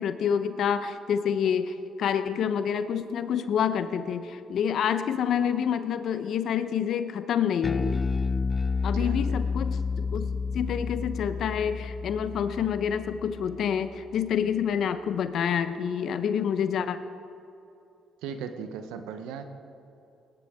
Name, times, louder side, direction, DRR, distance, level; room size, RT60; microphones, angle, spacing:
voice 1, 0.0-8.0 8.8-17.0, left 8 dB, 65° left, 11 dB, 0.8 m, -28 dB
Bass guitar, 7.6-14.1, left 5 dB, 35° left, 0.3 m, -30 dB
voice 2, 8.9-9.4 18.2-19.4, right 7 dB, 85° right, 8 dB, 0.8 m, -37 dB
20.5 x 11.0 x 3.7 m, 2.9 s
supercardioid pair, 70°, 0 cm